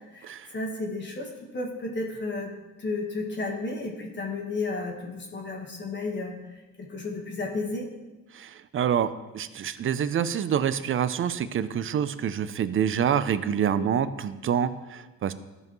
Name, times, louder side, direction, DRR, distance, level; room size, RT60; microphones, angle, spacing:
voice 1, 0.1-2.5 2.8-7.9 13.7-14.0, left 3 dB, 35° left, -1 dB, 1.4 m, -33 dB
voice 2, 8.4-15.3, right 8 dB, 45° right, 14 dB, 0.5 m, -27 dB
13.0 x 5.3 x 3.1 m, 1.1 s
cardioid pair, 90°, 30 cm